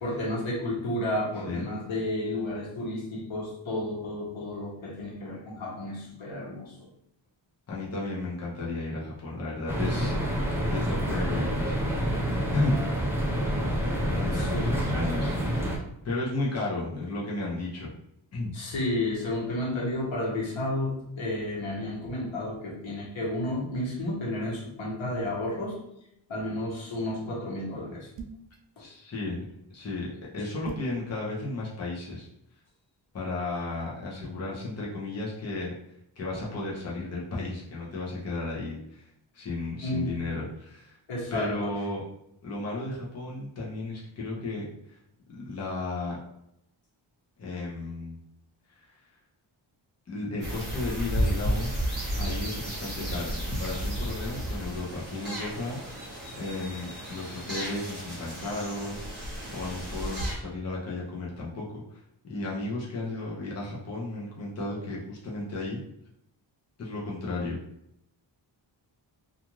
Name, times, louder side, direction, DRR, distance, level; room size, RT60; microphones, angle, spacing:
voice 1, 0.0-6.7 14.3-14.8 18.5-25.8 26.3-28.1 39.8-40.1 41.1-41.7, left 1 dB, 85° left, -4 dB, 1.0 m, -32 dB
voice 2, 7.7-11.8 12.5-12.8 14.1-15.5 16.0-17.9 18.3-18.5 28.8-29.4 29.7-32.3 33.1-35.7 36.2-39.1 39.3-41.0 41.3-42.0 42.4-45.0 45.3-46.2 47.4-48.2 48.7-48.8 50.1-51.8 52.2-55.8 56.4-62.0 62.2-65.8 66.8-67.6, left 2 dB, 35° left, -5 dB, 0.7 m, -34 dB
sound 1, 9.7-15.8, equal, 5° right, 0.3 m, -28 dB
sound 2, 28.2-28.6 30.6-31.0, right 5 dB, 70° right, 0.5 m, -39 dB
sound 3, 50.4-60.3, equal, 25° right, 1.0 m, -33 dB
2.5 x 2.4 x 3.0 m, 0.77 s
wide cardioid pair, 165°, 46 cm